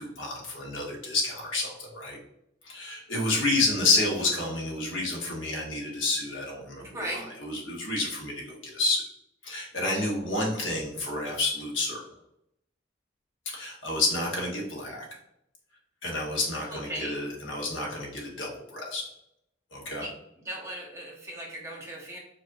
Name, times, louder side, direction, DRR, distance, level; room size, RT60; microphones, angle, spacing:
voice 1, 0.0-2.2 2.6-9.0 9.4-12.0 13.4-15.1 16.0-19.0 19.7-20.0, left 2 dB, 90° left, -2 dB, 1.3 m, -29 dB
voice 2, 6.8-7.3 16.7-17.2 20.0-20.1 20.4-22.2, right 1 dB, 15° right, -3 dB, 0.9 m, -37 dB
4.9 x 2.6 x 2.6 m, 0.78 s
head